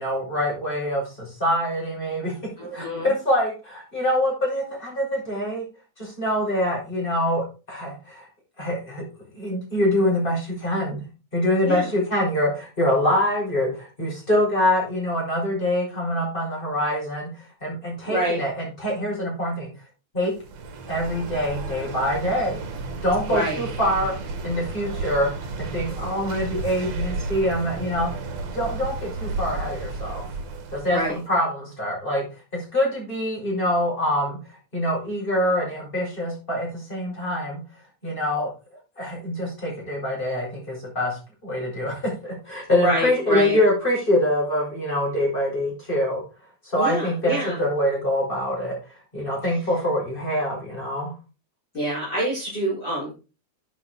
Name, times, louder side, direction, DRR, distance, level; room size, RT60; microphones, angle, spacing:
voice 1, 0.0-2.3 2.7-5.6 6.0-8.3 8.6-9.0 9.4-11.0 11.3-17.3 17.6-19.7 20.1-20.3 20.9-22.6 23.0-24.1 24.4-25.3 25.6-28.1 28.5-30.2 30.7-31.0 31.3-32.3 32.5-34.4 34.7-37.6 38.0-38.5 39.0-46.2 46.6-48.8 49.1-51.1, left 1 dB, 15° left, -2 dB, 5.9 m, -24 dB
voice 2, 2.6-3.1 11.6-11.9 18.0-18.4 23.3-23.6 30.9-31.2 42.8-43.6 46.7-47.6 51.7-53.1, right 1 dB, 30° left, -7 dB, 5.0 m, -26 dB
sound 1, 20.3-31.2, right 3 dB, 65° right, 2.9 m, -33 dB
11.0 x 8.5 x 3.9 m, 0.32 s
omnidirectional pair, 3.4 m